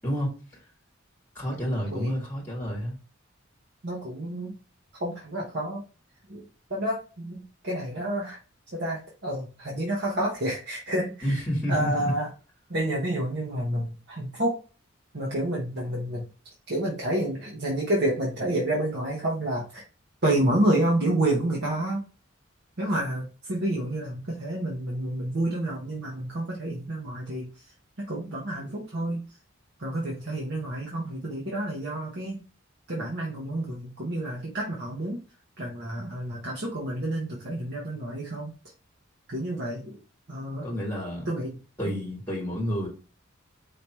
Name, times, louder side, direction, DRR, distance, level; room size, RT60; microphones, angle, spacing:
voice 1, 1.3-3.0 11.2-12.1 40.6-41.3 41.8-42.9, equal, 10° left, -2 dB, 1.6 m, -29 dB
voice 2, 3.8-4.5 5.0-5.8 6.3-6.4 6.7-8.4 8.7-11.4 11.7-12.3 12.7-14.6 15.1-16.3 16.7-19.8 20.2-22.0 22.8-27.5 28.0-29.2 29.8-32.4 32.9-35.2 35.6-38.5 39.3-40.0 40.3-40.7 41.3-41.6 41.9-42.0, right 1 dB, 55° right, -3 dB, 1.1 m, -29 dB
5.1 x 2.9 x 3.0 m, 0.34 s
head